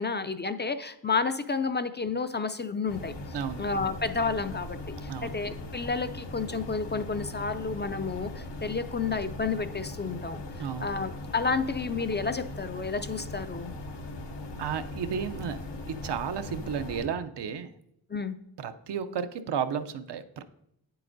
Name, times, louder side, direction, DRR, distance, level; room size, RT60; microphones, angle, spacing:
voice 1, 0.0-3.1 3.6-10.4 10.8-13.7 18.1-18.4, left 4 dB, 25° left, 10 dB, 0.4 m, -31 dB
sound 1, 2.9-17.1, left 2 dB, 80° left, 1.0 m, -39 dB
voice 2, 10.6-10.9 14.6-17.7 18.6-20.4, right 7 dB, 75° right, 9 dB, 0.6 m, -33 dB
9.0 x 7.7 x 2.6 m, 0.78 s
cardioid pair, 80°, 42 cm